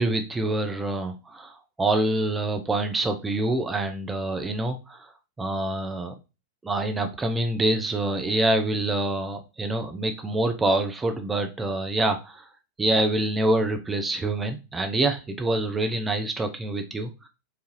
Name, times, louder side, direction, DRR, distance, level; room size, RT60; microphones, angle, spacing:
voice 1, 0.0-1.5 1.8-5.0 5.4-6.1 6.6-12.4 12.8-17.3, right 2 dB, 15° right, 6 dB, 0.5 m, -26 dB
4.7 x 2.6 x 3.1 m, 0.28 s
figure-of-eight pair, 90°, 0 cm